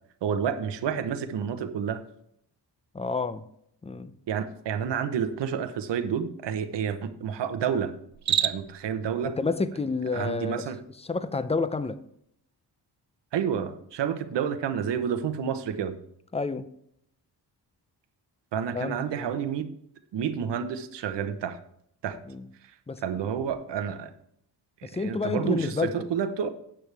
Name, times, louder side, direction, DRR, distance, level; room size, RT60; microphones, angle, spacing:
voice 1, 0.2-2.0 4.3-7.9 8.3-9.4 10.1-10.8 13.3-15.9 18.5-19.7 20.1-21.6 22.0-22.2 23.0-24.1 24.8-26.5, right 8 dB, 80° right, 1.1 m, -29 dB
voice 2, 2.9-3.5 3.8-4.1 9.2-10.7 11.0-12.0 16.3-16.7 18.7-19.3 22.3-22.5 22.9-23.0 24.8-26.1, left 4 dB, 15° left, 0.6 m, -29 dB
Cricket, 8.1-8.9, right 9 dB, 45° right, 0.5 m, -27 dB
13.5 x 8.9 x 3.4 m
wide cardioid pair, 125°, 41 cm